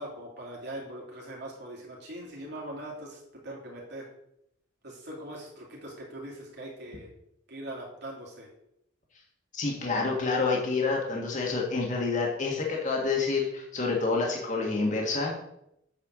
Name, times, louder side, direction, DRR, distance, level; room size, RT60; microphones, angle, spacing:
voice 1, 0.0-4.0 4.8-7.1 7.5-8.5, right 1 dB, 60° right, -2 dB, 2.8 m, -41 dB
voice 2, 9.5-15.5, left 4 dB, 40° left, -1 dB, 1.7 m, -28 dB
8.4 x 4.8 x 6.2 m, 0.78 s
head